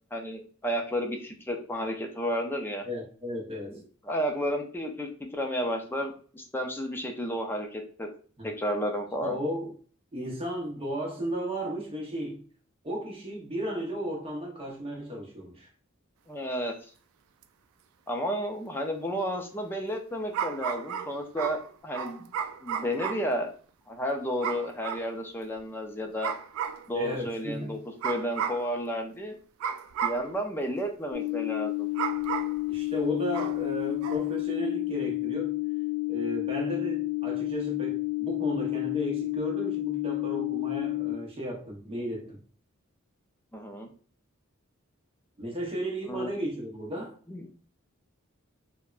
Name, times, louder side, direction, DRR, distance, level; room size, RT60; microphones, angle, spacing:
voice 1, 0.1-2.8 3.7-8.1 8.4-9.4 16.3-16.7 18.1-22.3 22.6-23.5 23.9-26.3 26.9-27.8 28.0-29.4 30.0-31.9 43.5-43.9 46.1-46.3 47.3-47.4, equal, 10° left, 0.4 m, -32 dB
voice 2, 2.9-3.8 8.4-8.5 9.2-9.7 10.1-12.4 12.8-15.7 26.9-27.8 32.7-35.6 36.1-42.4 45.4-47.2, equal, 30° right, 0.8 m, -34 dB
sound 1, 17.4-17.5 20.3-23.3 24.4-25.1 26.2-26.9 28.0-28.7 29.6-30.3 31.9-32.6 33.3-33.6 34.0-34.3, right 7 dB, 90° right, 0.3 m, -33 dB
sound 2, 31.1-41.1, left 26 dB, 65° left, 0.7 m, -30 dB
3.4 x 2.1 x 2.4 m
head